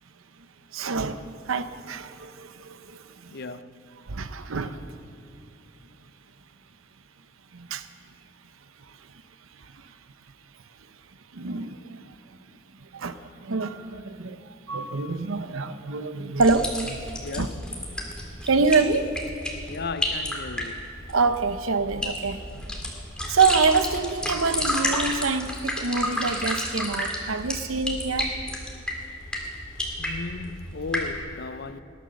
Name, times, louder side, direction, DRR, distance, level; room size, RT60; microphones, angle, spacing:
voice 1, 0.7-1.2 1.5-3.3 4.1-4.8 7.5-7.9 9.7-9.8 11.3-12.1 12.9-14.4 14.7-17.1 17.4-17.5 18.1-19.1 21.1-22.6 23.3-28.3, right 4 dB, 80° right, 0.8 m, -26 dB
voice 2, 3.3-3.9 17.2-17.7 19.7-20.9 30.0-31.8, left 4 dB, 55° left, 0.6 m, -35 dB
sound 1, 16.4-31.2, left 1 dB, 5° left, 2.3 m, -31 dB
19.5 x 11.0 x 6.5 m
head